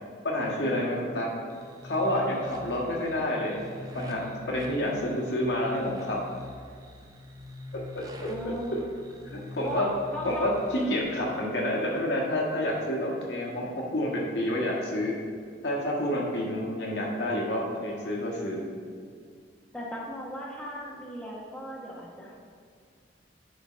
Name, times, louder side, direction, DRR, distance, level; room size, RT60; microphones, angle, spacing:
voice 1, 0.2-1.3 1.8-3.6 3.9-6.2 7.9-8.8 9.2-9.9 10.2-15.2 15.6-18.6, left 1 dB, 75° left, -3 dB, 1.7 m, -29 dB
sound 1, 1.5-11.0, left 2 dB, 20° right, 0.7 m, -44 dB
voice 2, 4.8-5.3 8.3-8.9 9.6-10.5 19.7-22.3, equal, 5° left, -4 dB, 1.0 m, -37 dB
10.0 x 4.0 x 5.1 m, 2.2 s
head